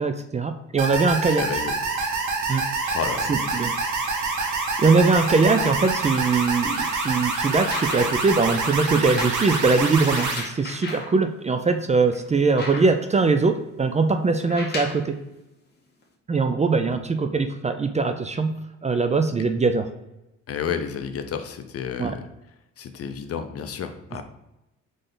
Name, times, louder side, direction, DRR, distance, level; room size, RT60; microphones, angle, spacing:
voice 1, 0.0-1.4 2.5-2.6 3.3-3.7 4.8-15.2 16.3-18.5 18.8-19.9 22.0-22.1, right 4 dB, 25° right, 7 dB, 0.4 m, -21 dB
sound 1, 0.8-10.4, right 3 dB, 75° right, 1.0 m, -26 dB
voice 2, 1.3-1.7 2.8-3.4 20.5-22.3 22.8-24.2, left 7 dB, 50° left, 8 dB, 0.6 m, -31 dB
sound 2, 7.6-8.3 9.0-11.2 11.7-11.8 12.1-13.2 14.4-15.1 16.0-16.1, left 2 dB, 35° left, 1.2 m, -35 dB
3.9 x 3.3 x 3.8 m, 0.94 s
cardioid pair, 90°, 30 cm